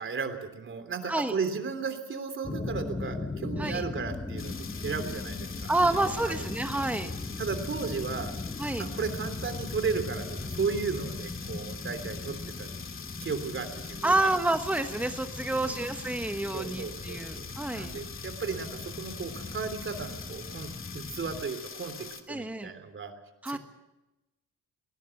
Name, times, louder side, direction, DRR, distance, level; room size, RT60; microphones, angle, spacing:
voice 1, 0.0-6.4 7.4-8.3 8.8-12.7 13.2-14.3 15.5-15.9 16.5-23.1 23.5-23.6, right 5 dB, 40° right, 9 dB, 3.3 m, -35 dB
voice 2, 1.0-1.3 3.6-3.8 5.7-7.1 8.6-8.9 14.0-17.9 22.3-22.7 23.4-23.6, right 2 dB, 5° right, 7 dB, 1.3 m, -29 dB
sound 1, 2.4-21.5, left 3 dB, 15° left, 1.1 m, -39 dB
sound 2, 4.4-22.2, left 6 dB, 45° left, 2.4 m, -44 dB
19.5 x 18.5 x 7.8 m, 1.0 s
cardioid pair, 90°, 30 cm